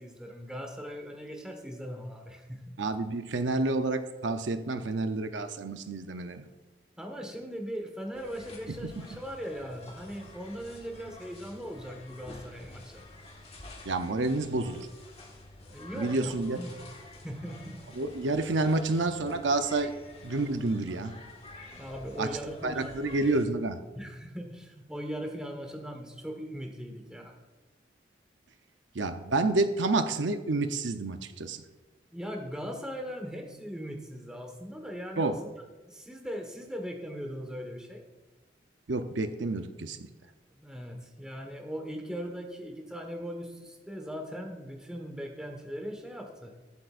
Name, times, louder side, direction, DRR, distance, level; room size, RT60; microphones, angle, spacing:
voice 1, 0.0-2.8 7.0-13.1 15.7-16.7 17.2-17.8 21.7-22.9 23.9-27.4 32.1-35.4 35.9-38.0 40.5-46.5, equal, 5° right, 2 dB, 1.3 m, -39 dB
voice 2, 2.8-6.5 8.7-9.2 13.8-14.9 15.9-16.6 17.9-20.0 20.2-21.2 22.2-23.8 28.9-31.6 35.2-35.4 38.9-40.1, right 2 dB, 85° right, 8 dB, 0.7 m, -29 dB
sound 1, 8.1-23.5, left 2 dB, 35° left, 1.7 m, -49 dB
22.0 x 7.8 x 2.5 m, 1.2 s
head